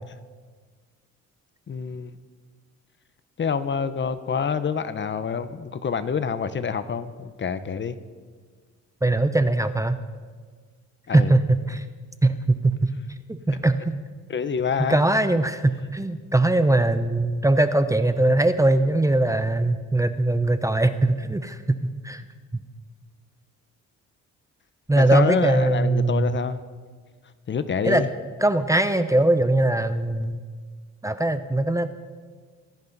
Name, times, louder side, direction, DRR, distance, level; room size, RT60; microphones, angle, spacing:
voice 1, 1.7-2.1 3.4-8.0 11.1-11.3 14.3-15.0 24.9-26.7 27.5-28.1, left 6 dB, 40° left, 12 dB, 0.9 m, -27 dB
voice 2, 9.0-10.0 11.1-11.8 12.2-12.9 13.3-13.8 14.9-22.2 22.5-22.6 24.9-26.4 27.8-28.0 28.4-30.4 31.0-31.9, right 2 dB, 10° right, 10 dB, 0.7 m, -21 dB
24.5 x 10.5 x 4.1 m, 1.5 s
cardioid pair, 90°, 30 cm